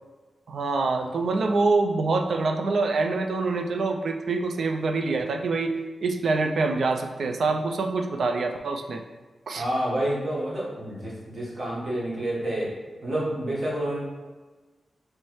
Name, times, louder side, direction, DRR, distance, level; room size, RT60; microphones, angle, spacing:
voice 1, 0.5-5.7 6.0-9.0 9.5-9.6, right 3 dB, 70° right, 5 dB, 0.3 m, -25 dB
voice 2, 9.5-12.7 13.0-14.0, right 1 dB, 50° right, -6 dB, 1.4 m, -28 dB
3.1 x 3.0 x 4.6 m, 1.3 s
wide cardioid pair, 110°, 0 cm